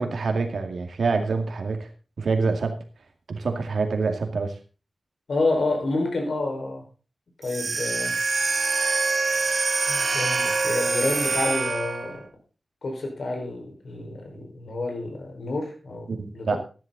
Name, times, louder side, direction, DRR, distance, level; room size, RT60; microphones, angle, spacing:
voice 1, 0.0-1.9 2.2-2.8 3.3-4.6 16.1-16.6, right 4 dB, 85° right, 5 dB, 2.3 m, -26 dB
voice 2, 5.3-6.8 7.4-8.2 9.9-12.3 12.8-16.6, left 2 dB, 75° left, 2 dB, 5.1 m, -29 dB
sound 1, 7.4-12.2, right 4 dB, 55° right, 0.6 m, -25 dB
14.0 x 11.0 x 4.1 m, 0.35 s
wide cardioid pair, 90°, 0 cm